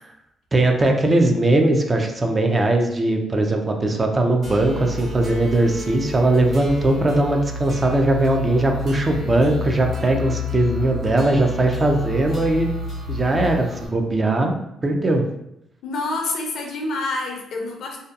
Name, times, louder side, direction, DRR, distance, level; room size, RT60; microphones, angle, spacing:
voice 1, 0.5-12.7 13.1-14.5 14.8-15.2, right 2 dB, 30° right, 3 dB, 0.4 m, -19 dB
sound 1, 4.4-13.9, left 2 dB, 55° right, 1.2 m, -30 dB
voice 2, 15.8-18.0, left 2 dB, 70° left, 1 dB, 0.5 m, -27 dB
2.6 x 2.2 x 2.4 m, 0.79 s
cardioid pair, 90°, 0 cm